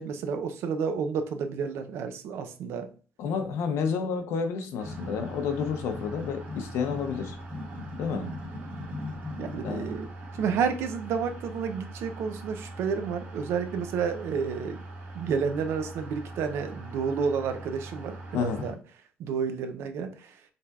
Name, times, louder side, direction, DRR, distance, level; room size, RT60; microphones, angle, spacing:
voice 1, 0.0-2.9 8.1-8.3 9.4-10.1 10.4-14.8 15.1-18.8 19.2-20.4, right 6 dB, 65° right, 0.6 m, -30 dB
voice 2, 3.2-7.4 8.0-8.3 9.6-9.9 18.3-18.7, left 6 dB, 75° left, 0.7 m, -30 dB
sound 1, 4.8-18.7, equal, 35° right, 1.2 m, -40 dB
5.4 x 3.4 x 2.4 m
cardioid pair, 170°, 5 cm